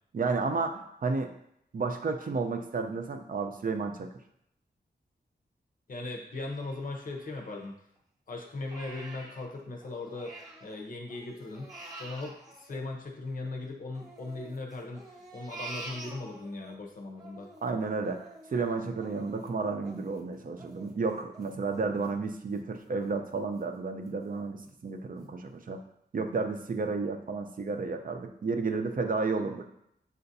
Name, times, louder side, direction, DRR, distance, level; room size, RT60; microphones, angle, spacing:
voice 1, 0.1-1.3 1.7-4.1 17.6-25.8 26.1-29.6, right 4 dB, 50° right, 5 dB, 0.5 m, -32 dB
voice 2, 5.9-7.7 8.3-10.3 10.6-11.6 12.0-17.5, left 2 dB, 50° left, 1 dB, 0.7 m, -38 dB
Crying sobbing, 6.3-8.0 8.4-10.8 11.1-13.5 13.9-16.8 17.1-22.6 23.0-23.2 23.6-24.1 24.6-24.7 25.2-25.3, right 2 dB, 20° right, 1.0 m, -48 dB
6.7 x 2.5 x 2.7 m, 0.76 s
wide cardioid pair, 90°, 18 cm